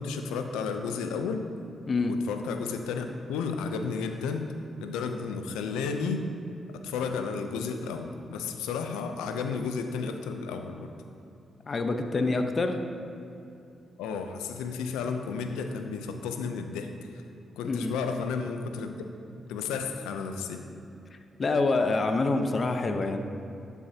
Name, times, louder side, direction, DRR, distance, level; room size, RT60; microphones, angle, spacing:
voice 1, 0.0-1.5 2.1-4.5 4.8-6.3 6.7-10.9 14.0-17.2 17.6-19.0 19.5-20.7, left 5 dB, 90° left, 6 dB, 0.6 m, -33 dB
voice 2, 11.7-12.8 17.6-17.9 21.4-23.2, left 3 dB, 50° left, 6 dB, 0.9 m, -26 dB
12.5 x 8.3 x 2.9 m, 2.7 s
supercardioid pair, 45°, 0 cm